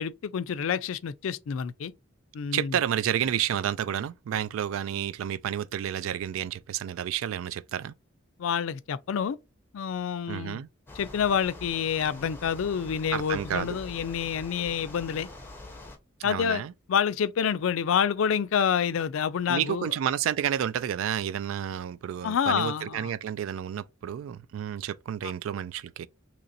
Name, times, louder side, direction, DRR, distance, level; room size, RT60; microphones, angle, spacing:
voice 1, 0.0-1.9 2.3-2.8 8.4-9.4 9.7-10.6 10.9-15.3 16.2-16.6 16.9-20.0 22.2-23.1 25.2-25.3, left 7 dB, 80° left, 0.4 m, -28 dB
voice 2, 2.5-7.9 10.3-10.7 13.1-13.8 16.2-16.7 19.5-26.1, right 9 dB, 85° right, 0.3 m, -30 dB
sound 1, 10.9-16.0, left 2 dB, 10° left, 0.7 m, -44 dB
3.0 x 2.5 x 4.1 m
head